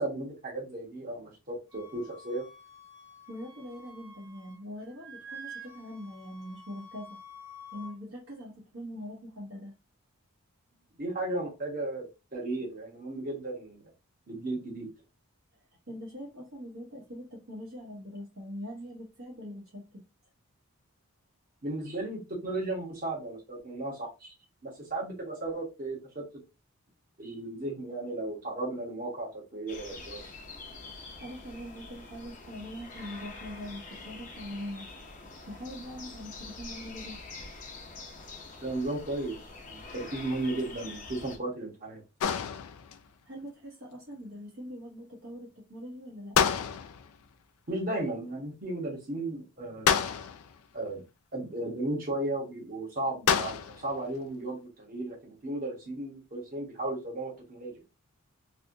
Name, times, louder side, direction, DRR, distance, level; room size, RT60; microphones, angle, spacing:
voice 1, 0.0-2.4 11.0-12.1 12.3-13.8 14.3-14.9 21.6-24.3 24.6-26.2 27.2-30.2 38.6-39.4 39.7-42.0 47.7-50.0 50.7-51.0 51.3-57.8, right 2 dB, 40° right, 1.3 m, -35 dB
Wind instrument woodwind instrument, 1.7-4.6 4.9-7.9, equal, 10° right, 0.7 m, -48 dB
voice 2, 3.3-7.2 7.7-9.7 15.9-20.1 31.2-34.9 35.5-37.2 43.2-46.4, equal, 60° right, 1.1 m, -42 dB
sound 1, 29.7-41.4, left 3 dB, 35° left, 0.7 m, -45 dB
sound 2, 42.2-43.1 46.3-47.2 49.9-50.6 53.3-53.9, left 7 dB, 75° left, 0.4 m, -28 dB
3.3 x 2.7 x 2.6 m
head